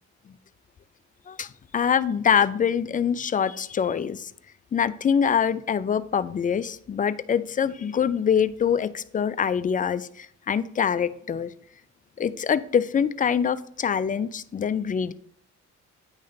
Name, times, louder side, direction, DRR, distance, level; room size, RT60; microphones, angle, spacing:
voice 1, 1.3-4.3 4.7-11.5 12.2-15.1, left 7 dB, 30° left, 14 dB, 0.3 m, -24 dB
9.6 x 3.2 x 3.9 m, 0.66 s
cardioid pair, 90°, 30 cm